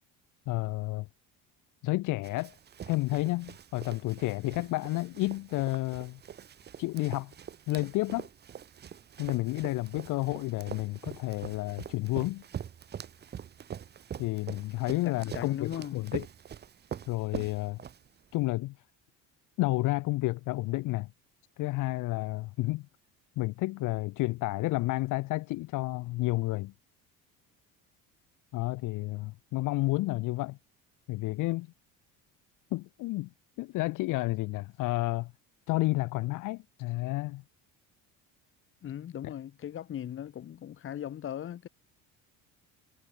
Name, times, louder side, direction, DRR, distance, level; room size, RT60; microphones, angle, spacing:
voice 1, 0.5-1.1 1.8-2.6 2.9-6.2 6.8-7.3 7.7-8.3 9.2-12.4 14.2-16.2 17.1-17.8 18.3-18.7 19.6-21.1 21.6-22.8 23.4-26.7 28.5-30.6 31.1-31.7 32.7-33.3 33.6-35.3 35.7-37.4, left 20 dB, 65° left, 0.9 m, -31 dB
Run, 2.2-18.4, right 8 dB, 30° right, 1.2 m, -44 dB
voice 2, 15.0-16.1 38.8-41.7, left 10 dB, 35° left, 1.7 m, -38 dB
cardioid pair, 150°, 34 cm